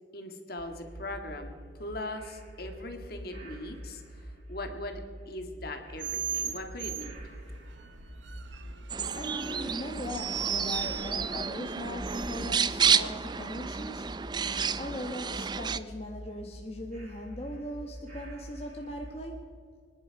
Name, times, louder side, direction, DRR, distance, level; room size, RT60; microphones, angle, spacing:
voice 1, 0.1-1.5 1.8-4.0 4.5-5.0 5.3-7.1, left 1 dB, 55° left, 5 dB, 1.8 m, -39 dB
sound 1, 0.6-19.2, equal, 40° right, 4.6 m, -46 dB
sound 2, 6.0-12.6, right 9 dB, 85° right, 1.1 m, -38 dB
sound 3, 8.9-15.8, right 6 dB, 25° right, 0.4 m, -30 dB
voice 2, 9.1-14.0 14.7-19.4, left 1 dB, 35° left, 1 dB, 1.2 m, -39 dB
25.0 x 10.5 x 4.7 m, 2.1 s
head